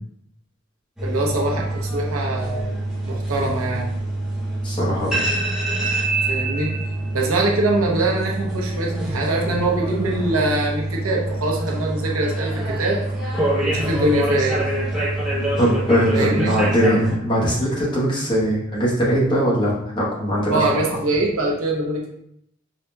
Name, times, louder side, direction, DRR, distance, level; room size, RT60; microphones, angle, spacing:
sound 1, 1.0-17.2, right 1 dB, 5° right, 0.6 m, -25 dB
voice 1, 1.0-2.7 3.0-3.9 6.3-6.7 7.1-13.0 13.6-14.6 16.1-16.5 20.5-22.1, right 2 dB, 80° right, -1 dB, 0.8 m, -23 dB
voice 2, 4.6-5.2 15.6-20.7, equal, 20° left, -6 dB, 1.0 m, -20 dB
4.8 x 2.8 x 2.2 m, 0.74 s
head